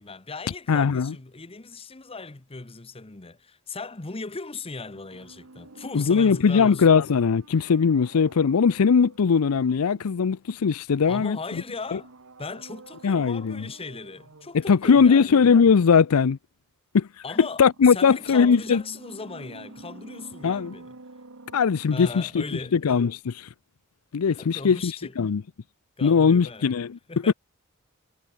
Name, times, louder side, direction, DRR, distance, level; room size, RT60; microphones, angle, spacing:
voice 1, 0.0-6.9 11.0-12.1 12.4-15.4 17.2-21.0 21.9-22.7 24.3-25.2 26.0-26.7 27.1-27.3, left 3 dB, 25° left, 1.0 m, -38 dB
voice 2, 0.7-1.1 5.9-11.6 11.9-12.0 13.0-13.7 14.5-16.4 16.9-17.1 17.6-18.8 20.4-20.7 21.5-22.4 22.7-23.5 24.1-25.4 26.0-27.0, left 6 dB, 85° left, 0.5 m, -20 dB
sound 1, 4.9-10.7 11.7-14.7 17.5-22.7 23.0-23.1, right 2 dB, 65° right, 1.6 m, -49 dB
head